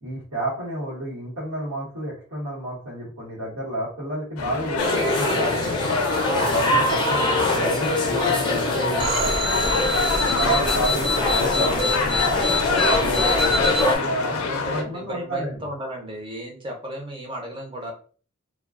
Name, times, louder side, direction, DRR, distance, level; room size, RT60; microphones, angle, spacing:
voice 1, 0.0-5.9 6.3-9.8 10.1-14.4 14.7-15.7, right 1 dB, 80° right, -8 dB, 1.1 m, -31 dB
sound 1, 4.4-14.8, left 4 dB, 75° left, 0.4 m, -27 dB
sound 2, 4.8-14.0, left 1 dB, 20° left, 0.5 m, -24 dB
voice 2, 6.4-7.1 10.3-10.8 14.3-17.9, equal, 25° right, 1 dB, 0.6 m, -34 dB
sound 3, 9.0-13.8, left 2 dB, 50° right, 0.8 m, -25 dB
2.3 x 2.3 x 2.3 m, 0.41 s
head